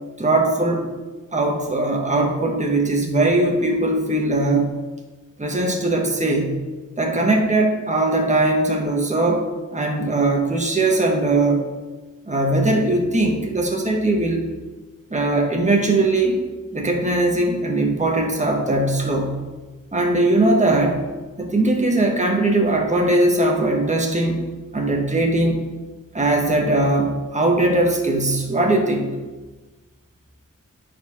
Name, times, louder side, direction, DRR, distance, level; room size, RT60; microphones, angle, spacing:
voice 1, 0.2-0.9 1.3-4.7 5.4-6.6 7.0-11.6 12.3-14.5 15.1-16.4 16.7-19.4 19.9-21.0 21.4-25.6 26.1-29.2, right 2 dB, 20° right, 1 dB, 1.4 m, -20 dB
9.3 x 4.8 x 5.9 m, 1.2 s
wide cardioid pair, 75°, 31 cm